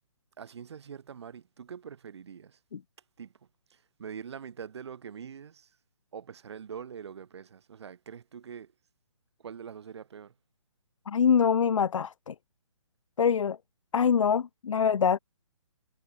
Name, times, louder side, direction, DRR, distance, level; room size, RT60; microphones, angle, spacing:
voice 1, 0.4-2.6 3.2-3.3 3.7-5.7 6.1-8.7 9.4-10.3, right 7 dB, 50° right, 7.2 m, -44 dB
voice 2, 11.1-12.3 13.2-13.6 13.9-15.2, left 7 dB, 65° left, 0.8 m, -24 dB
hypercardioid pair, 165°, 17 cm